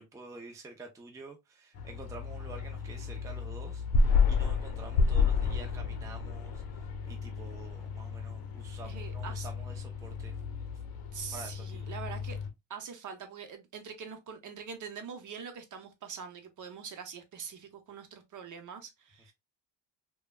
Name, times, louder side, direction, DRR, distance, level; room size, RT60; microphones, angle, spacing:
voice 1, 0.0-10.4 11.3-11.8, right 2 dB, 5° right, 0.5 m, -49 dB
sound 1, 1.8-12.5, left 4 dB, 55° left, 0.8 m, -31 dB
voice 2, 8.8-9.5 11.1-12.4 12.7-19.3, right 6 dB, 40° right, 0.8 m, -44 dB
3.1 x 2.3 x 2.2 m
supercardioid pair, 85°, 45 cm